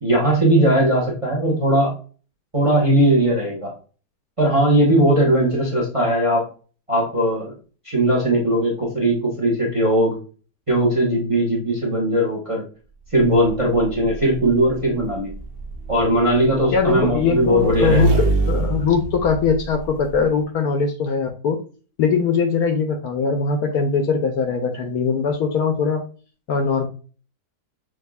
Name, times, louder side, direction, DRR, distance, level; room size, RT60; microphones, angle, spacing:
voice 1, 0.0-1.9 2.5-3.7 4.4-6.5 6.9-7.5 7.8-10.2 10.7-12.6 13.1-15.3 15.9-18.2, right 1 dB, 30° right, -2 dB, 0.7 m, -19 dB
Motorcycle / Engine, 13.1-20.2, right 2 dB, 65° right, 0.6 m, -25 dB
voice 2, 16.7-21.6 22.0-26.0 26.5-26.9, left 5 dB, 70° left, 5 dB, 0.9 m, -21 dB
6.1 x 2.7 x 2.3 m, 0.38 s
omnidirectional pair, 1.9 m